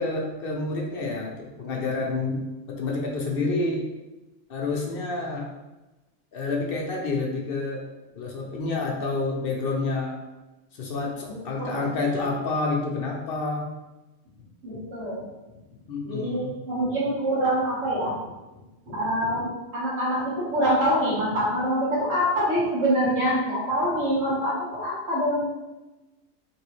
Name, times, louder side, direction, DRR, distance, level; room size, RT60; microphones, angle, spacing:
voice 1, 0.0-3.8 4.5-5.5 6.3-7.9 8.1-10.2 10.7-13.7 15.9-16.5, left 3 dB, 60° left, -1 dB, 0.7 m, -28 dB
voice 2, 11.3-11.9 14.6-15.2 16.0-18.1 18.9-25.4, equal, 85° right, -9 dB, 1.8 m, -25 dB
3.0 x 2.9 x 3.0 m, 1.1 s
omnidirectional pair, 1.3 m